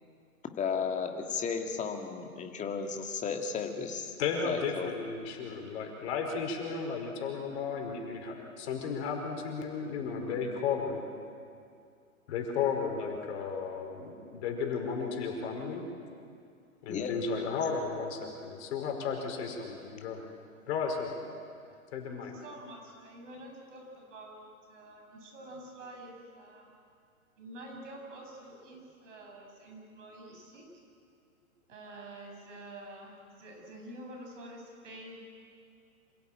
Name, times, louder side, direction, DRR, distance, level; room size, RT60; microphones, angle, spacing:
voice 1, 0.6-4.1 4.5-4.9 16.9-17.1, left 6 dB, 15° left, 4 dB, 2.2 m, -34 dB
voice 2, 4.2-11.0 12.3-15.8 16.8-20.3 20.7-21.2 21.9-22.4, left 5 dB, 50° left, 2 dB, 5.3 m, -34 dB
voice 3, 22.1-26.7 27.4-30.7 31.7-35.2, right 1 dB, 55° right, 1 dB, 7.8 m, -48 dB
27.0 x 16.5 x 9.0 m, 2.3 s
hypercardioid pair, 120°, 44 cm